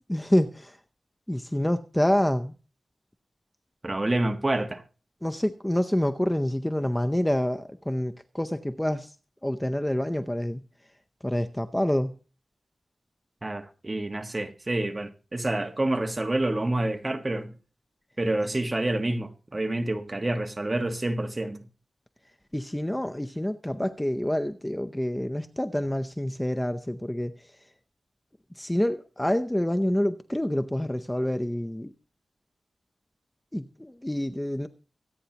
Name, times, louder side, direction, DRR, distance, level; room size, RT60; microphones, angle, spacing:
voice 1, 0.1-0.8 1.3-2.5 5.2-9.1 9.4-10.6 11.2-12.2 22.5-27.5 28.6-31.9 33.5-34.7, left 1 dB, 10° left, 0.6 m, -27 dB
voice 2, 3.8-4.8 13.4-17.5 18.2-21.7, right 1 dB, 25° right, 1.4 m, -28 dB
24.5 x 9.2 x 2.9 m
wide cardioid pair, 100°, 0 cm